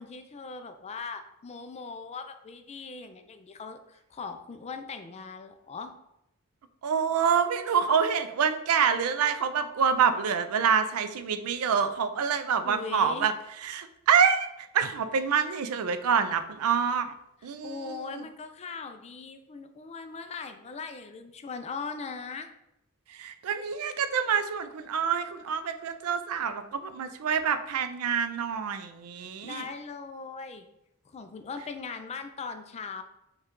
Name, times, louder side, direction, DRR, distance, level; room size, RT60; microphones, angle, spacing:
voice 1, 0.0-5.9 12.6-13.3 17.6-22.5 29.2-30.7 31.1-33.0, left 4 dB, 30° left, 7 dB, 0.4 m, -40 dB
voice 2, 6.8-17.1 17.4-18.2 23.1-29.7, right 7 dB, 85° right, 10 dB, 0.4 m, -27 dB
5.3 x 2.4 x 3.7 m, 0.82 s
head